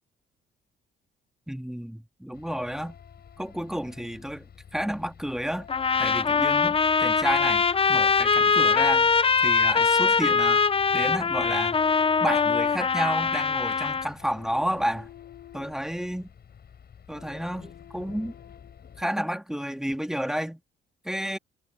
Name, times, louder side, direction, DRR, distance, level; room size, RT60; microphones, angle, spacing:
voice 1, 1.5-3.0 3.4-5.7 6.0-9.1 9.4-10.7 10.9-11.8 12.2-15.1 15.5-16.3 17.1-18.3 19.0-20.6 21.0-21.4, equal, ahead, 2.2 m, -31 dB
sound 1, 2.4-19.0, left 8 dB, 55° left, 7.2 m, -48 dB
sound 2, 5.7-14.1, left 5 dB, 30° left, 0.7 m, -22 dB
cardioid pair, 90°, 20 cm